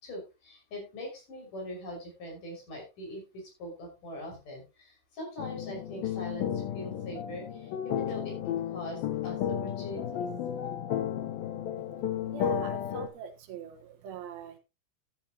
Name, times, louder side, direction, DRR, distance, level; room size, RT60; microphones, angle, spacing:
voice 1, 0.0-10.3, left 1 dB, 60° left, 0 dB, 7.2 m, -42 dB
sound 1, 5.4-13.1, left 9 dB, 80° left, 2.9 m, -33 dB
voice 2, 12.3-14.6, right 8 dB, 85° right, 5 dB, 3.2 m, -43 dB
13.5 x 10.0 x 2.9 m, 0.27 s
omnidirectional pair, 4.2 m